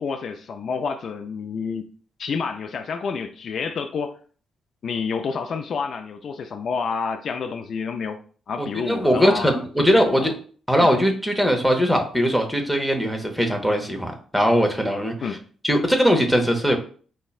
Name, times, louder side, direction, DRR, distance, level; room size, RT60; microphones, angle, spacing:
voice 1, 0.0-1.9 2.2-4.2 4.8-8.2 8.5-10.3 10.8-10.9 15.2-15.4, left 5 dB, 60° left, 0.3 m, -29 dB
voice 2, 8.6-10.3 10.7-15.1 15.6-16.8, equal, ahead, 0.7 m, -20 dB
5.2 x 2.1 x 2.3 m
cardioid pair, 100°, 0 cm